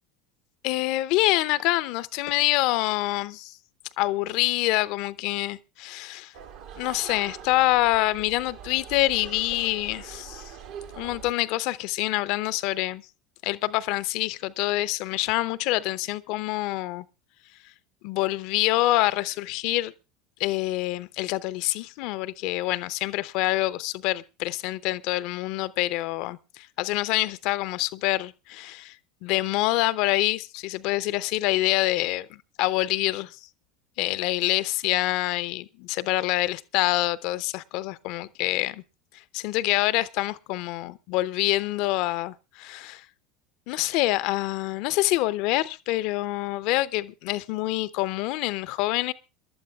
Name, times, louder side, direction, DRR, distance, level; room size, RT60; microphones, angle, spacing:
voice 1, 0.6-3.6 4.0-6.3 6.8-10.5 11.0-13.0 13.4-17.0 18.0-19.9 20.4-28.9 29.2-33.4 34.0-38.8 39.3-43.0 43.7-49.1, left 18 dB, 55° left, 0.6 m, -26 dB
sound 1, 6.3-11.3, right 8 dB, 60° right, 1.7 m, -42 dB
27.0 x 12.0 x 2.4 m
figure-of-eight pair, 75°, 0 cm